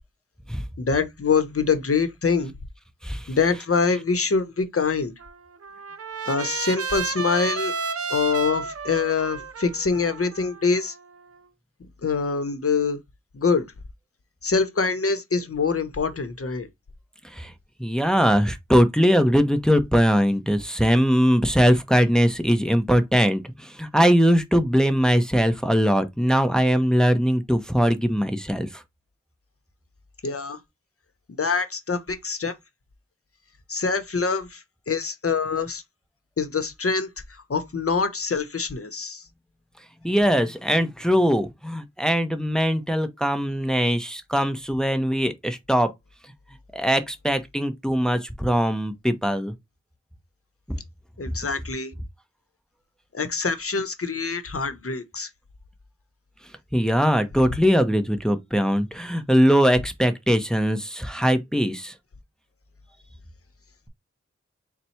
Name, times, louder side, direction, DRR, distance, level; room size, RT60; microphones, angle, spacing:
voice 1, 0.8-2.5 3.3-5.1 6.2-7.7 8.1-10.9 12.0-13.0 13.3-13.7 14.4-16.7 30.2-30.6 31.4-32.5 33.7-35.8 36.4-37.1 37.5-39.2 51.2-51.9 53.1-55.3, left 5 dB, 50° left, 0.9 m, -24 dB
Trumpet, 5.2-11.4, right 5 dB, 55° right, 0.6 m, -32 dB
voice 2, 17.8-28.8 40.0-45.9 46.7-49.5 56.7-61.9, equal, ahead, 0.7 m, -21 dB
4.1 x 2.2 x 4.3 m
wide cardioid pair, 50°, 29 cm